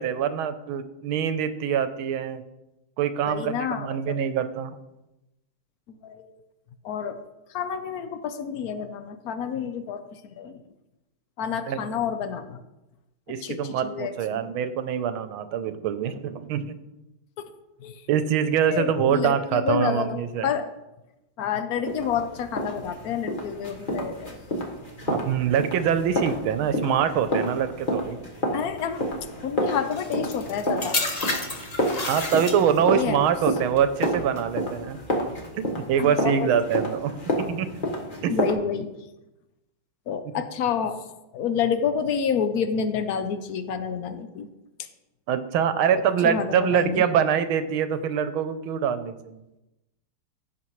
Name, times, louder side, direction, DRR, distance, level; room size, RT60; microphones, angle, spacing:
voice 1, 0.0-2.4 3.0-4.7 11.7-11.8 13.3-16.8 18.1-20.5 25.1-28.2 32.0-35.0 35.5-37.7 38.2-38.3 40.3-40.4 45.3-49.4, right 8 dB, 80° right, 11 dB, 1.5 m, -24 dB
voice 2, 3.2-4.2 5.9-6.3 6.8-7.2 7.5-10.6 11.4-12.6 13.4-14.4 17.4-17.5 17.8-18.1 18.7-20.7 21.4-24.6 28.5-29.0 29.4-31.0 32.9-33.2 36.0-36.5 38.3-38.9 40.1-41.0 41.3-44.5 44.8-44.9 45.9-47.0, left 7 dB, 70° left, 10 dB, 0.9 m, -29 dB
sound 1, 21.9-38.5, equal, 30° left, 1.2 m, -30 dB
sound 2, 29.9-33.0 33.8-34.1, left 2 dB, 45° left, 0.5 m, -30 dB
15.5 x 6.7 x 3.1 m, 0.97 s
omnidirectional pair, 2.3 m